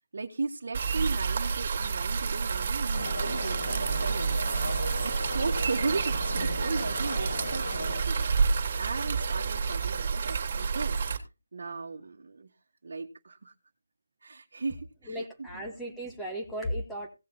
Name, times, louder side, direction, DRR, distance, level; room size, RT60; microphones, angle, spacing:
voice 1, 0.1-4.6 5.0-11.0 11.5-12.5 12.8-13.5 14.2-15.2, right 3 dB, 60° right, 1 dB, 1.6 m, -36 dB
sound 1, 0.7-11.2, right 5 dB, 40° right, 2.7 m, -29 dB
sound 2, 2.9-8.0, left 2 dB, 75° left, 4.9 m, -37 dB
voice 2, 15.0-17.1, equal, 5° left, 0 dB, 2.1 m, -35 dB
17.5 x 6.6 x 4.2 m, 0.28 s
figure-of-eight pair, 165°, 0 cm